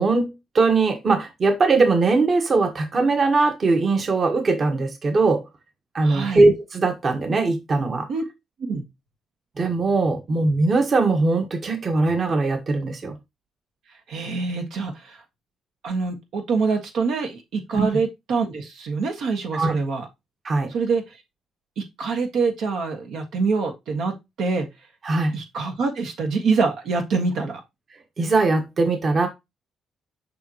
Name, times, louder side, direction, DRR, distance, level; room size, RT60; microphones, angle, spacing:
voice 1, 0.0-5.4 5.9-8.1 9.6-13.1 17.7-17.9 19.5-19.7 20.4-20.7 25.0-25.3 28.2-29.3, right 3 dB, 45° right, 1.4 m, -20 dB
voice 2, 6.0-6.4 8.1-8.2 8.6-8.8 14.1-15.2 15.8-20.1 20.7-21.0 21.8-24.1 24.4-24.7 25.3-27.6, right 4 dB, 75° right, 1.6 m, -25 dB
6.9 x 5.1 x 3.0 m
cardioid pair, 90°, 0 cm